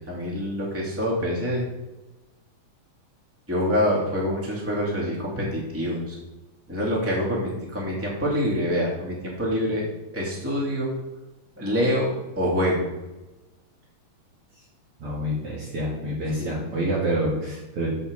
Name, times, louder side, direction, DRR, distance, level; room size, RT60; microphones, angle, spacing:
voice 1, 0.1-1.6 3.5-6.2 6.7-9.8 10.1-10.9 11.6-12.9 16.4-16.6, equal, 5° right, -4 dB, 2.0 m, -26 dB
voice 2, 15.0-17.9, right 1 dB, 55° right, -4 dB, 2.4 m, -27 dB
7.2 x 6.0 x 6.7 m, 1.1 s
omnidirectional pair, 3.3 m